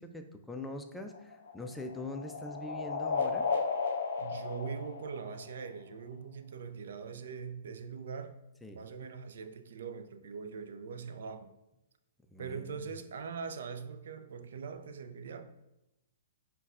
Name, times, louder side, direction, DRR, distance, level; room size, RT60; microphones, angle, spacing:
voice 1, 0.0-3.5 8.6-8.8 12.3-12.9, left 2 dB, 5° left, 4 dB, 0.4 m, -43 dB
sound 1, 1.0-5.7, left 5 dB, 75° left, 0.4 m, -34 dB
voice 2, 4.2-8.4 8.7-11.5 12.4-15.4, right 5 dB, 70° right, 8 dB, 0.3 m, -42 dB
5.3 x 2.2 x 2.4 m, 0.92 s
hypercardioid pair, 130°, 0 cm